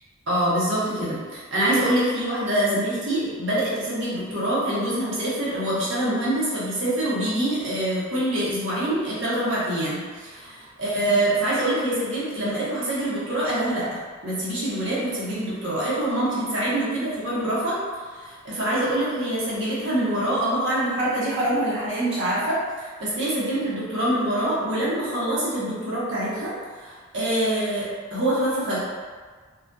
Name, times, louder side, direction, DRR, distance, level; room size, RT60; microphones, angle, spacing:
voice 1, 0.3-13.8 14.2-17.8 18.1-26.5 26.8-28.8, right 1 dB, 60° right, -9 dB, 0.9 m, -25 dB
2.6 x 2.4 x 2.2 m, 1.5 s
head